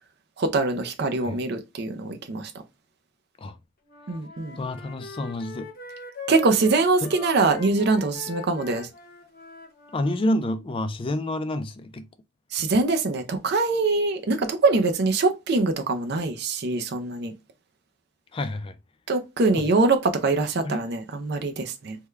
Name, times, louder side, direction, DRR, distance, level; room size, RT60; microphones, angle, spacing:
voice 1, 0.4-2.5 4.1-4.6 6.3-8.9 12.5-17.3 19.1-22.0, right 3 dB, 50° right, 0.5 m, -23 dB
Wind instrument woodwind instrument, 3.8-10.2, left 3 dB, 40° left, 0.7 m, -41 dB
voice 2, 4.6-5.7 7.0-7.1 9.9-12.1 18.3-18.8 19.6-19.7 20.6-20.8, left 1 dB, 25° left, 0.3 m, -28 dB
3.4 x 2.2 x 3.1 m
head